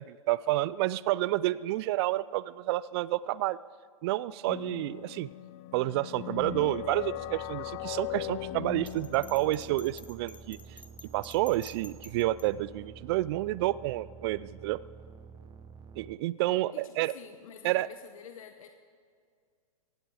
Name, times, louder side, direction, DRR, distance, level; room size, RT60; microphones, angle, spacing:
voice 1, 0.0-3.6 4.0-5.3 5.7-10.6 11.1-14.8 16.0-17.1 17.6-17.9, right 16 dB, 45° right, 19 dB, 0.4 m, -29 dB
sound 1, 4.5-9.9, left 19 dB, 35° left, 0.3 m, -39 dB
sound 2, 6.4-16.2, right 6 dB, 20° right, 0.9 m, -50 dB
Bell, 8.9-12.5, left 3 dB, 10° left, 1.2 m, -51 dB
voice 2, 16.5-18.7, left 8 dB, 65° left, 7 dB, 1.1 m, -49 dB
18.0 x 15.0 x 4.9 m, 2.1 s
hypercardioid pair, 125°, 19 cm